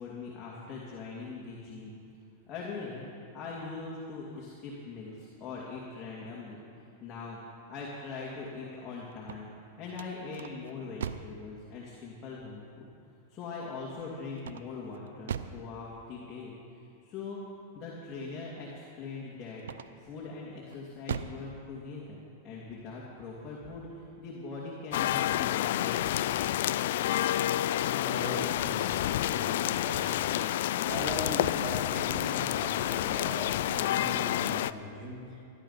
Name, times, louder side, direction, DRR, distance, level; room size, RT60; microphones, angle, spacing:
voice 1, 0.0-1.9 2.5-3.1 3.3-7.4 7.7-9.5 9.8-12.9 13.3-17.4 17.7-19.6 20.0-26.2, left 4 dB, 30° left, -5 dB, 2.6 m, -41 dB
sound 1, 9.1-11.4 14.4-15.7 19.6-20.2 20.7-21.5, right 8 dB, 85° right, 0.6 m, -39 dB
sound 2, 24.9-34.7, left 13 dB, 70° left, 0.3 m, -29 dB
voice 2, 28.0-30.4 30.8-35.4, right 1 dB, 25° right, -4 dB, 4.1 m, -39 dB
15.0 x 11.5 x 5.8 m, 2.6 s
hypercardioid pair, 130°, 0 cm